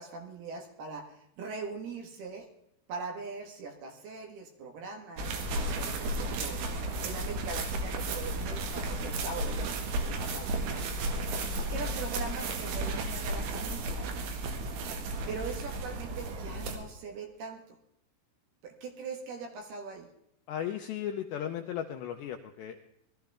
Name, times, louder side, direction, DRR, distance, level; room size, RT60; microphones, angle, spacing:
voice 1, 0.0-2.5 2.9-6.6 7.0-10.8 11.6-14.0 15.3-17.8 18.6-20.1, right 4 dB, 65° right, 3 dB, 3.0 m, -41 dB
sound 1, 5.2-16.8, right 2 dB, 85° right, 4.4 m, -33 dB
voice 2, 20.5-22.8, left 10 dB, 85° left, 5 dB, 2.5 m, -36 dB
21.0 x 13.0 x 3.5 m, 0.78 s
omnidirectional pair, 5.8 m